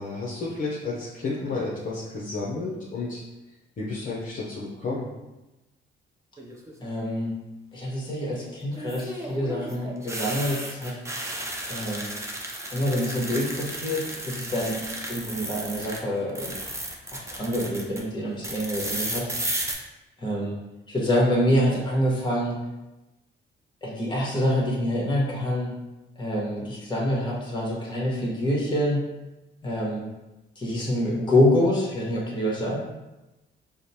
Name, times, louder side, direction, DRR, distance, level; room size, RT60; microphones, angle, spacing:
voice 1, 0.0-3.2 3.8-5.0, left 3 dB, 45° left, -5 dB, 0.7 m, -31 dB
sound 1, 6.4-6.9 8.7-16.0 16.3-18.0 18.4-19.7, right 1 dB, 15° right, 0.6 m, -34 dB
voice 2, 6.8-7.3 7.7-11.0 11.7-12.1 12.7-14.8 15.1-16.6 17.1-19.3 20.2-20.6 20.9-22.6 23.8-25.7 26.2-29.1 29.6-30.1 30.6-32.8, left 1 dB, 20° left, -4 dB, 1.3 m, -26 dB
4.9 x 2.2 x 2.8 m, 1.0 s
cardioid pair, 90°, 20 cm